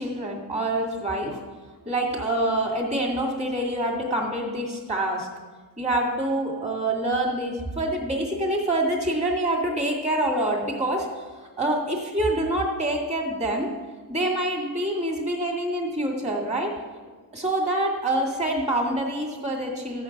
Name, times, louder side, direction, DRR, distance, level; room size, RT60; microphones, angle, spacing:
voice 1, 0.0-1.4 1.9-5.3 5.8-13.7 14.1-16.7 17.3-20.0, right 1 dB, 15° right, 0 dB, 2.4 m, -26 dB
14.0 x 8.6 x 6.0 m, 1.4 s
wide cardioid pair, 160°, 42 cm